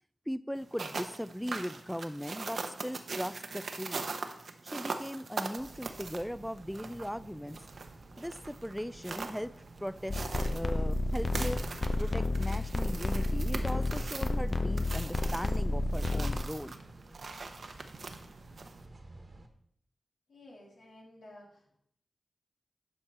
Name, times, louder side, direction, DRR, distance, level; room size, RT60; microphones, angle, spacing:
voice 1, 0.3-4.1 4.6-7.6 8.2-9.5 9.8-11.6 12.0-16.7, equal, ahead, 15 dB, 0.3 m, -38 dB
sound 1, 0.6-18.8, right 4 dB, 70° right, 0.8 m, -42 dB
sound 2, 5.6-19.5, right 2 dB, 55° right, 1.3 m, -53 dB
sound 3, 10.1-16.4, left 2 dB, 50° left, 0.7 m, -31 dB
voice 2, 20.3-21.8, left 1 dB, 90° left, -2 dB, 2.5 m, -53 dB
11.5 x 4.6 x 4.2 m, 0.69 s
cardioid pair, 40°, 0 cm